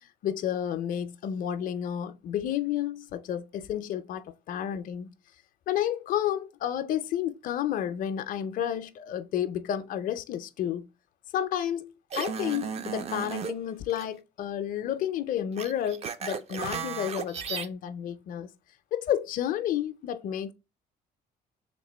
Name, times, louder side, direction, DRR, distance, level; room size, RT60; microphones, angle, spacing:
voice 1, 0.2-5.1 5.7-10.9 11.3-18.5 18.9-20.5, left 10 dB, 55° left, 0.4 m, -31 dB
sound 1, 12.1-13.5 13.9-14.1 15.6-17.7, right 7 dB, 40° right, 0.4 m, -34 dB
3.3 x 2.9 x 4.2 m
cardioid pair, 110°, 17 cm